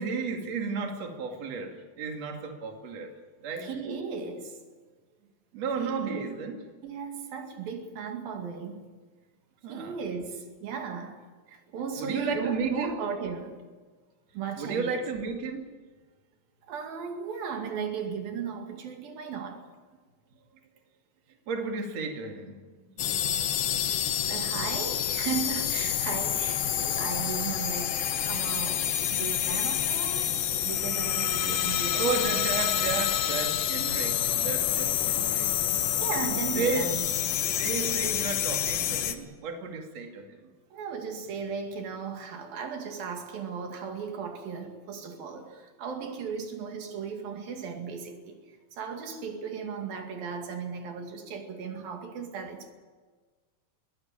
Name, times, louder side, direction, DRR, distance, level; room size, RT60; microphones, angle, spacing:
voice 1, 0.0-3.1 3.4-3.7 5.5-6.6 9.6-10.0 12.0-13.0 14.6-15.7 21.5-23.2 31.9-35.5 36.6-36.9 37.6-40.4, right 4 dB, 50° right, 3.5 m, -33 dB
voice 2, 3.6-4.6 5.8-6.3 6.8-9.0 9.7-11.2 11.5-13.6 14.3-15.1 16.7-19.7 24.2-32.5 36.0-37.1 40.7-48.4 48.7-52.7, right 6 dB, 80° right, 4.0 m, -36 dB
sound 1, 23.0-39.1, left 10 dB, 70° left, 2.7 m, -28 dB
22.5 x 17.0 x 8.8 m
omnidirectional pair, 4.1 m